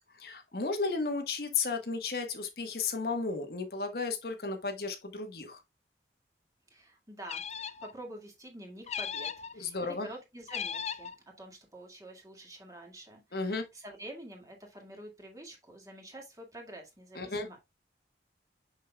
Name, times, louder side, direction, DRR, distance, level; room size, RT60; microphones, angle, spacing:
voice 1, 0.1-5.6 9.5-10.1 13.3-13.6 17.1-17.5, left 4 dB, 60° left, 1.3 m, -34 dB
voice 2, 6.7-17.6, right 1 dB, 20° right, 1.9 m, -48 dB
sound 1, 7.2-7.9 8.9-9.5 10.5-11.2, left 7 dB, 35° left, 0.4 m, -37 dB
6.5 x 6.5 x 2.3 m
head